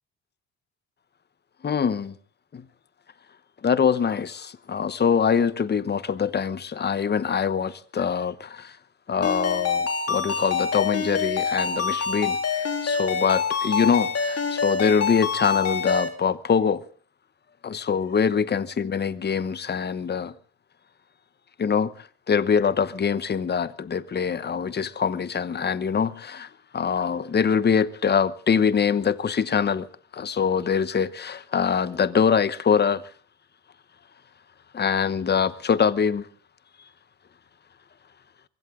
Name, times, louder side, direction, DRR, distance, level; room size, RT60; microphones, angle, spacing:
voice 1, 1.6-2.1 2.5-2.7 3.6-8.8 9.1-16.8 17.6-20.3 21.6-29.9 30.1-33.0 34.7-36.3, left 6 dB, 35° left, 1.0 m, -24 dB
Ringtone, 9.2-16.1, left 5 dB, 55° left, 3.6 m, -26 dB
23.0 x 16.5 x 3.7 m
cardioid pair, 90°, 30 cm